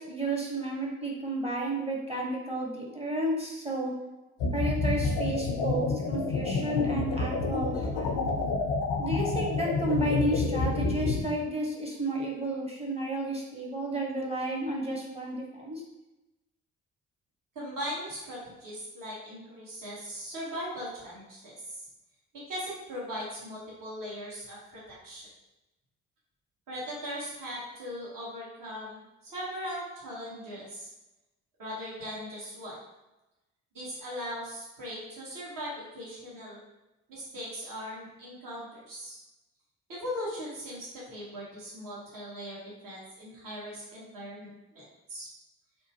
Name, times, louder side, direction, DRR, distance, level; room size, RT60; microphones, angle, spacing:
voice 1, 0.0-3.9 4.5-8.3 9.0-15.8, right 1 dB, 15° right, -2 dB, 0.9 m, -32 dB
sound 1, 4.4-11.2, left 3 dB, 75° left, 0.5 m, -29 dB
voice 2, 17.5-21.8 22.5-25.3 26.7-30.9 31.6-32.8 33.7-36.6 37.1-39.2 39.9-44.5 44.7-44.8 45.1-45.3, equal, 55° right, -6 dB, 1.3 m, -39 dB
2.8 x 2.2 x 2.9 m, 0.99 s
hypercardioid pair, 45°, 39 cm